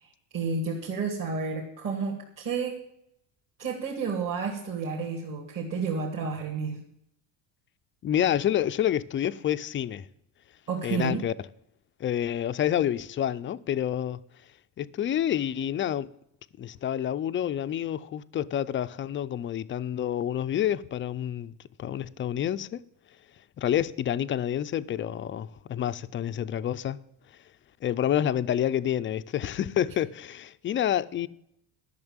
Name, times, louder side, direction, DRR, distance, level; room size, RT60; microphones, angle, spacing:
voice 1, 0.0-2.8 3.6-6.8 10.7-11.2, right 5 dB, 45° right, 2.7 m, -31 dB
voice 2, 8.0-10.1 10.8-11.3 12.0-14.2 14.8-16.1 16.6-22.8 23.6-27.0 27.8-31.3, left 10 dB, 30° left, 0.4 m, -28 dB
12.5 x 6.7 x 8.8 m
cardioid pair, 160°, 45 cm